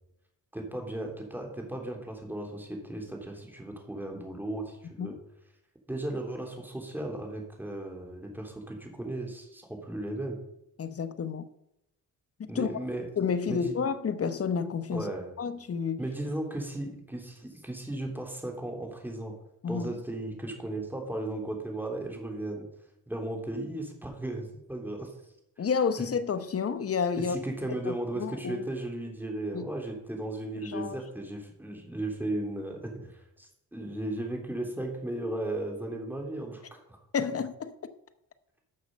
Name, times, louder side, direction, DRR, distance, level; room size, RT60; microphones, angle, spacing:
voice 1, 0.5-5.2 5.9-10.4 12.5-13.1 13.5-13.7 14.9-15.3 16.0-19.3 19.7-22.6 23.1-25.1 27.1-37.0, right 1 dB, 5° right, 3.1 m, -36 dB
voice 2, 10.8-11.5 12.4-12.7 13.2-15.1 15.4-16.0 19.6-19.9 25.6-27.4 27.8-28.7 29.5-29.7 30.6-31.0 37.1-37.7, left 6 dB, 40° left, 1.0 m, -30 dB
12.5 x 6.5 x 5.3 m
cardioid pair, 80°, 36 cm